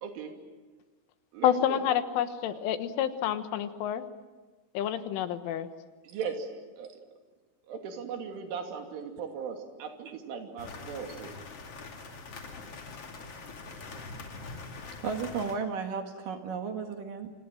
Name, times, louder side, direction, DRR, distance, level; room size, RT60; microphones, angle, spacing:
voice 1, 0.0-0.3 1.3-1.8 6.0-6.5 6.8-6.9 7.7-11.3, right 6 dB, 80° right, 3 dB, 5.3 m, -38 dB
voice 2, 1.4-4.0 4.8-5.7, left 10 dB, 90° left, 9 dB, 3.9 m, -28 dB
sound 1, 10.6-15.6, left 3 dB, 40° left, 2.7 m, -43 dB
voice 3, 15.0-17.3, right 5 dB, 60° right, 5 dB, 2.7 m, -34 dB
29.0 x 26.0 x 7.6 m, 1.3 s
omnidirectional pair, 5.5 m